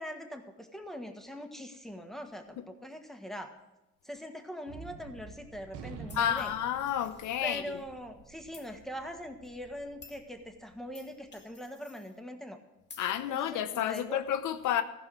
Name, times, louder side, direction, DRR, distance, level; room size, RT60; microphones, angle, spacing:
voice 1, 0.0-3.5 4.0-6.5 7.4-12.6 13.3-14.2, equal, ahead, 1.5 m, -42 dB
Gunshot gunfire, 4.7-11.2, right 5 dB, 90° right, 1.2 m, -50 dB
voice 2, 6.1-7.8 13.0-14.8, left 10 dB, 80° left, 0.9 m, -31 dB
sound 1, 6.1-7.8 8.5-8.7 9.4-9.5 10.0-10.2 10.9-12.2 12.9-13.1, left 4 dB, 35° left, 1.8 m, -54 dB
15.0 x 5.6 x 7.8 m
cardioid pair, 90°, 30 cm